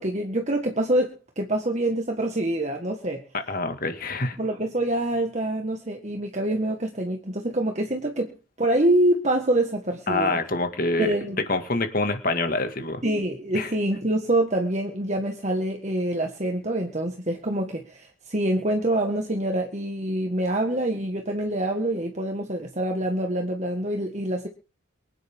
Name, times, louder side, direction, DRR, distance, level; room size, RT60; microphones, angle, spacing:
voice 1, 0.0-3.2 4.4-10.4 11.0-11.4 13.0-24.5, right 1 dB, 35° right, 2 dB, 1.7 m, -26 dB
voice 2, 3.3-4.4 10.1-11.1 11.5-13.0 13.5-13.7, left 2 dB, 45° left, 8 dB, 2.1 m, -26 dB
24.5 x 9.8 x 3.7 m, 0.34 s
head